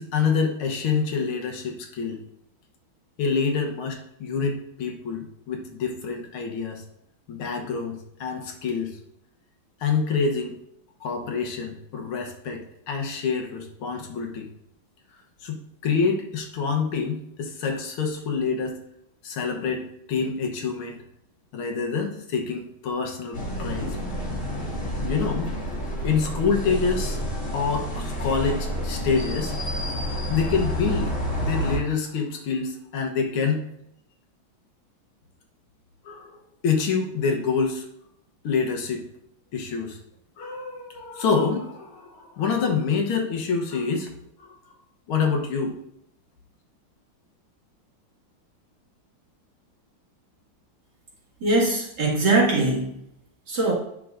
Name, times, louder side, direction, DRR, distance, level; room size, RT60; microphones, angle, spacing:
voice 1, 0.0-2.2 3.2-6.8 7.3-9.0 9.8-10.6 11.0-14.5 15.4-18.8 19.2-19.8 20.1-21.0 21.5-24.0 25.0-25.5 26.0-27.2 27.5-29.6 30.3-33.7 36.1-37.9 38.4-39.0 39.5-40.0 40.4-44.1 44.4-44.5 45.1-45.8, left 5 dB, 85° left, 3 dB, 2.0 m, -27 dB
sound 1, 23.3-31.8, equal, 35° left, 2.6 m, -29 dB
voice 2, 51.4-53.0 53.5-53.7, right 2 dB, 55° right, -4 dB, 2.7 m, -21 dB
9.8 x 5.9 x 2.6 m, 0.77 s
omnidirectional pair, 2.3 m